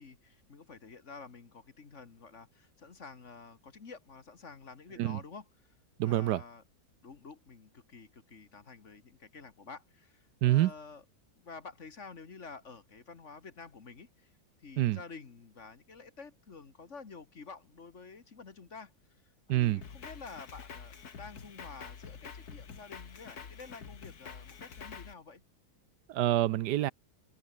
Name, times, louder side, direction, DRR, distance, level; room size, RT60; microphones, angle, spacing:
voice 1, 0.0-5.8 6.0-6.6 7.0-11.0 11.4-25.4, left 4 dB, 40° left, 2.0 m, -50 dB
voice 2, 6.0-6.4 10.4-10.7 14.8-15.0 19.5-19.8 26.1-26.9, right 15 dB, 75° right, 1.1 m, -27 dB
Drum kit, 19.8-25.1, left 6 dB, 60° left, 2.3 m, -47 dB
open air
omnidirectional pair, 1.9 m